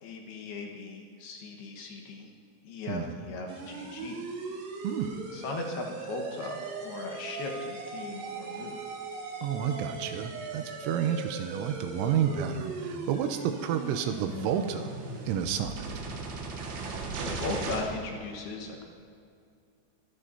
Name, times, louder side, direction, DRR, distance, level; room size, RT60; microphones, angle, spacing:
voice 1, 0.0-2.3 2.6-4.2 5.3-8.8 16.8-18.8, left 3 dB, 65° left, 1 dB, 2.8 m, -38 dB
voice 2, 2.9-3.2 4.8-5.2 9.4-14.9 15.3-15.9, right 8 dB, 90° right, 7 dB, 3.2 m, -30 dB
sound 1, 3.5-17.8, right 3 dB, 65° right, 3.7 m, -38 dB
24.0 x 13.5 x 2.7 m, 2.4 s
omnidirectional pair, 5.7 m